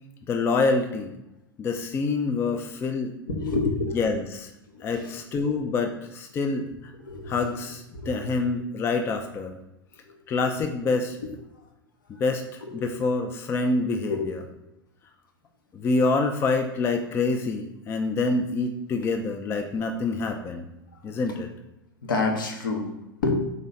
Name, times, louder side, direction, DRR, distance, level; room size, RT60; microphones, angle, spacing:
voice 1, 0.3-1.2 1.6-3.1 3.9-4.5 4.8-6.9 7.3-9.6 10.3-11.2 12.1-14.4 15.7-20.7 21.0-21.5, left 3 dB, 20° left, 5 dB, 0.3 m, -26 dB
voice 2, 3.3-4.0 4.7-5.1 7.0-7.3 7.9-8.4 10.0-10.1 12.6-12.9 14.1-14.2 22.0-22.9 23.2-23.4, left 3 dB, 65° left, 2 dB, 0.9 m, -28 dB
4.0 x 3.0 x 4.0 m, 0.91 s
figure-of-eight pair, 90°, 12 cm